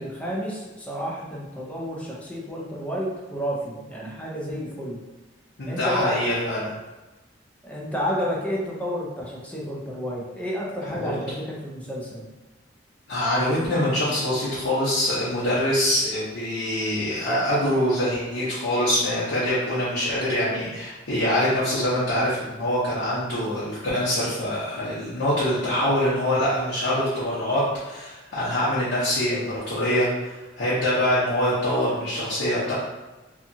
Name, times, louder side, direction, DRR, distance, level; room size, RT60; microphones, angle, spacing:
voice 1, 0.0-5.0 5.7-6.2 7.6-12.3, equal, 10° left, -4 dB, 0.5 m, -31 dB
voice 2, 5.6-6.7 10.9-11.1 13.1-32.7, left 1 dB, 90° left, -10 dB, 0.8 m, -24 dB
2.8 x 2.3 x 2.6 m, 1.1 s
head